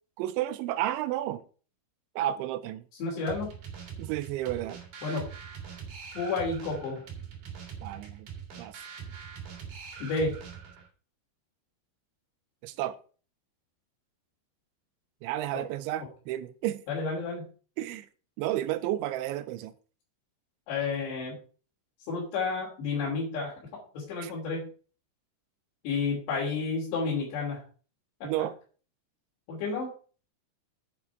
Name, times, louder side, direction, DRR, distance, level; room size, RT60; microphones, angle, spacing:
voice 1, 0.2-1.4 2.2-2.9 4.0-4.8 7.8-8.3 8.6-8.8 12.6-13.0 15.2-16.8 17.8-18.1 18.4-19.7 24.2-24.3 28.2-28.5, right 13 dB, 85° right, 3.0 m, -32 dB
voice 2, 3.0-3.5 5.0-5.3 6.1-7.0 10.0-10.3 15.5-15.6 16.9-17.5 20.7-21.4 22.1-24.7 25.8-27.6 28.2-28.3 29.5-29.9, left 4 dB, 65° left, 5.0 m, -31 dB
sound 1, 3.3-10.9, right 7 dB, 50° right, 3.4 m, -43 dB
9.7 x 8.7 x 4.7 m
omnidirectional pair, 5.4 m